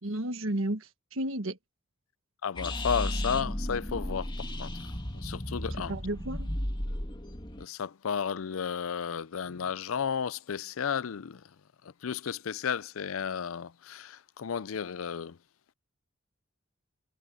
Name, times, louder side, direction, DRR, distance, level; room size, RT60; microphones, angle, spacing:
voice 1, 0.0-1.6 5.9-6.5, right 1 dB, 75° right, 1.5 m, -32 dB
voice 2, 2.4-4.9 5.1-6.0 7.6-11.4 11.8-15.4, left 7 dB, 80° left, 0.5 m, -33 dB
sound 1, 2.5-7.6, left 1 dB, 25° left, 2.1 m, -34 dB
head